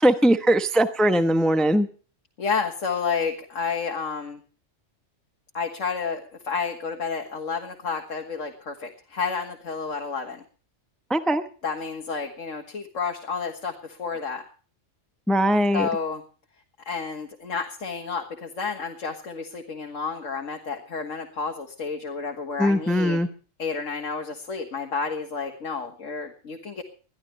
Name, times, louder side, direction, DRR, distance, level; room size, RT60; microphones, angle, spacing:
voice 1, 0.0-1.9 11.1-11.4 15.3-15.9 22.6-23.3, equal, ahead, 9 dB, 1.0 m, -20 dB
voice 2, 2.4-4.4 5.5-10.4 11.6-14.4 15.7-16.2 16.9-23.2 23.6-26.8, left 5 dB, 75° left, 2 dB, 2.0 m, -30 dB
22.0 x 13.5 x 3.3 m, 0.39 s
omnidirectional pair, 1.3 m